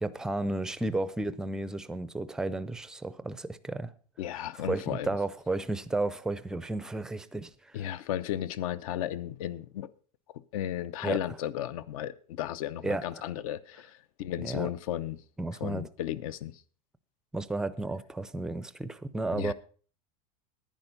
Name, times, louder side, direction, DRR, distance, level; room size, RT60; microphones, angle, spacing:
voice 1, 0.0-3.9 4.6-7.9 11.0-11.2 12.8-13.2 14.4-14.7 15.4-15.9 17.3-19.5, right 2 dB, 5° right, 0.4 m, -33 dB
voice 2, 4.2-5.1 7.7-9.9 10.5-15.2 15.6-16.5 19.3-19.5, left 11 dB, 75° left, 0.8 m, -34 dB
10.5 x 10.0 x 5.2 m
supercardioid pair, 160°, 18 cm